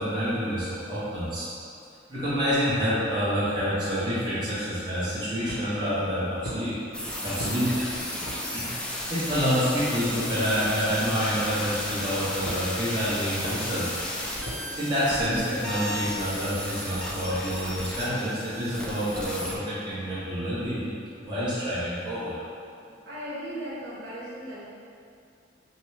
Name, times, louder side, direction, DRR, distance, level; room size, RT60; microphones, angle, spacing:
voice 1, 0.0-1.5 2.1-6.7 7.2-7.8 8.4-8.7 9.1-14.0 14.8-20.9 21.2-22.3, equal, 25° right, -11 dB, 0.9 m, -28 dB
sound 1, 5.4-5.9 6.4-6.6 7.4-7.6 8.2-8.4 9.3-9.5 10.3-10.4 11.4-11.6 12.4-12.9 13.4-13.6 14.4-14.7, right 1 dB, 65° left, 0.8 m, -37 dB
sound 2, 6.9-19.6, left 1 dB, 5° left, 0.3 m, -34 dB
voice 2, 23.0-24.6, equal, 65° right, -9 dB, 1.2 m, -37 dB
5.9 x 2.1 x 3.3 m, 2.5 s
head